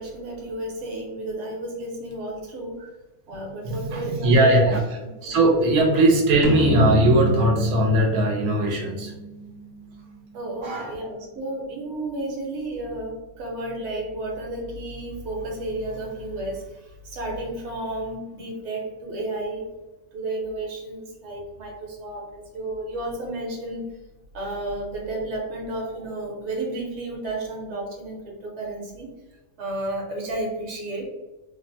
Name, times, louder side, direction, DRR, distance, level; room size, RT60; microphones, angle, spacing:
voice 1, 0.0-2.8 3.3-4.7 5.0-5.4 10.3-19.7 20.1-23.9 24.3-29.1 29.6-31.1, right 2 dB, 55° right, -1 dB, 1.0 m, -32 dB
voice 2, 3.6-4.8 5.2-9.1 10.6-11.0, right 1 dB, 85° right, 1 dB, 1.0 m, -20 dB
sound 1, 6.4-9.9, left 1 dB, 80° left, 1.0 m, -27 dB
3.1 x 2.0 x 2.6 m, 1.1 s
omnidirectional pair, 1.5 m